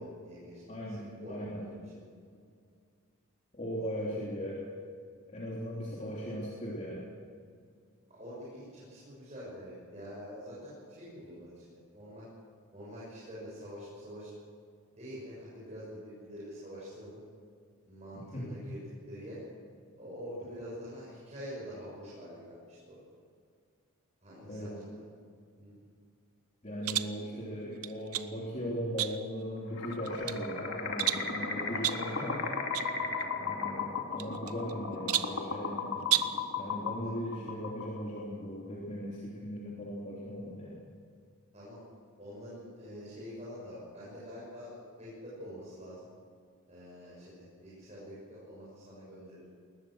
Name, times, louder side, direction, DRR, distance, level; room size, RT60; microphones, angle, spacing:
voice 1, 0.0-1.9 2.3-2.4 3.8-3.9 8.1-12.3 12.7-14.3 15.0-17.2 17.9-19.4 20.0-23.0 24.2-25.0 25.6-25.8 32.9-33.2 41.5-41.8 42.2-46.0 46.7-49.4, equal, 30° right, -7 dB, 6.9 m, -46 dB
voice 2, 0.7-1.6 3.5-4.6 5.3-7.1 18.1-18.6 24.5-24.7 26.6-32.4 33.3-36.1 36.5-40.8, equal, 35° left, -5 dB, 3.4 m, -38 dB
sound 1, 26.8-27.2 27.8-28.3 29.0-29.4 29.9-30.4 31.0-31.3 31.8-32.1 32.7-32.9 33.2-33.3 34.2-34.7 35.1-35.4 36.0-36.4, right 13 dB, 90° right, 0.9 m, -32 dB
sound 2, 29.7-38.2, left 4 dB, 65° left, 2.4 m, -36 dB
21.5 x 20.0 x 6.5 m, 2.2 s
head